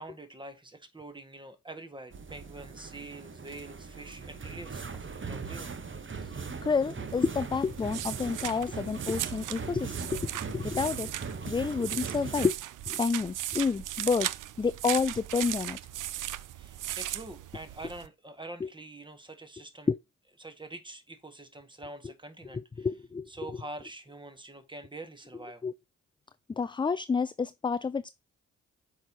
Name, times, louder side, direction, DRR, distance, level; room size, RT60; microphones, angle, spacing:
voice 1, 0.0-5.7 16.5-19.9 20.4-22.9 23.3-25.6, right 2 dB, 15° right, 1.7 m, -45 dB
sound 1, 2.1-12.5, right 5 dB, 35° right, 1.1 m, -40 dB
voice 2, 6.6-11.1 11.5-12.6 12.9-14.3 14.6-15.8 18.6-18.7 19.9-20.0 22.5-23.3 25.6-25.7 26.6-28.1, left 5 dB, 15° left, 0.3 m, -29 dB
sound 2, 7.1-18.1, right 13 dB, 65° right, 0.5 m, -38 dB
7.3 x 4.9 x 2.8 m
hypercardioid pair, 40°, 34 cm